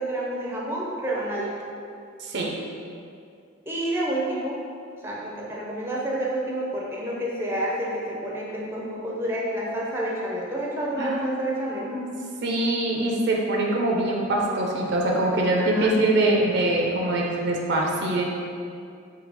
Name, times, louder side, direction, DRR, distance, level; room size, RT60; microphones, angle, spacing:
voice 1, 0.0-1.5 3.7-4.6 5.0-11.9 15.6-15.9, right 1 dB, 15° right, -5 dB, 0.6 m, -29 dB
voice 2, 2.2-2.5 11.0-11.2 11.5-12.1 12.4-18.2, right 1 dB, 60° right, -1 dB, 0.6 m, -24 dB
3.8 x 2.8 x 4.7 m, 2.3 s
head